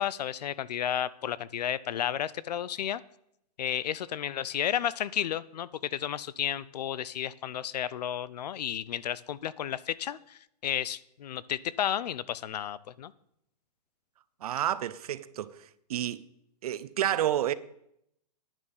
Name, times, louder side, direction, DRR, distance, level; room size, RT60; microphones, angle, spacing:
voice 1, 0.0-3.0 3.6-13.1, left 10 dB, 75° left, 0.6 m, -32 dB
voice 2, 14.4-16.2 16.6-17.5, right 11 dB, 65° right, 0.7 m, -30 dB
10.5 x 9.2 x 5.5 m
hypercardioid pair, 150°, 21 cm